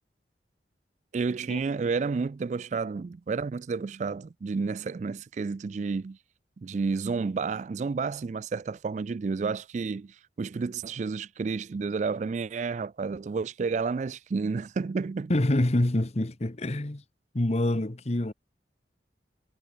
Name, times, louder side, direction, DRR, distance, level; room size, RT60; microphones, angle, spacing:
voice 1, 1.1-6.2 6.6-15.3, right 4 dB, 40° right, 0.3 m, -31 dB
voice 2, 15.3-17.0 17.3-18.3, left 1 dB, 35° left, 1.1 m, -26 dB
head